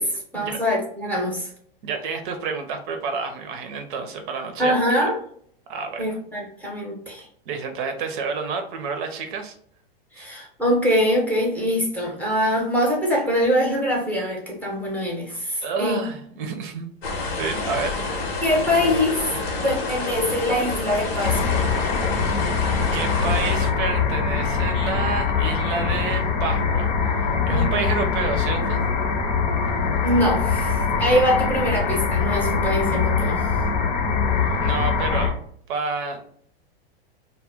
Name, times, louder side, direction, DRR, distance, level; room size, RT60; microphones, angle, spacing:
voice 1, 0.0-1.5 4.6-5.2 6.0-7.3 10.1-16.0 18.4-19.2 19.6-21.7 27.5-27.8 30.0-33.5, equal, 5° left, -1 dB, 0.7 m, -23 dB
voice 2, 1.8-5.0 5.7-6.2 7.5-9.5 10.2-10.3 15.6-16.9 17.4-18.0 19.3-19.4 22.9-28.8 34.6-35.3 35.7-36.2, right 5 dB, 55° right, 5 dB, 0.6 m, -29 dB
sound 1, 17.0-23.7, left 3 dB, 80° left, 0.9 m, -28 dB
sound 2, 21.2-35.3, left 5 dB, 55° left, 0.7 m, -23 dB
2.2 x 2.1 x 3.4 m, 0.63 s
hypercardioid pair, 120°, 30 cm